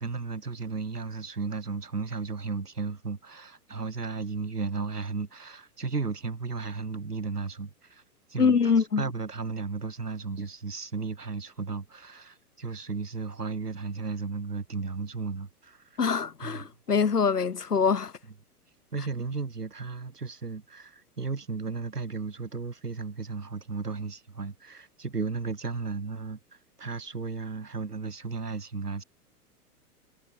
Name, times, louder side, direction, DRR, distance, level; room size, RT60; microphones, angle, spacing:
voice 1, 0.0-8.0 8.3-16.0 16.4-16.7 18.9-29.0, right 4 dB, 80° right, 3.7 m, -34 dB
voice 2, 8.4-9.0 16.0-18.1, left 6 dB, 80° left, 1.6 m, -24 dB
figure-of-eight pair, 105°, 46 cm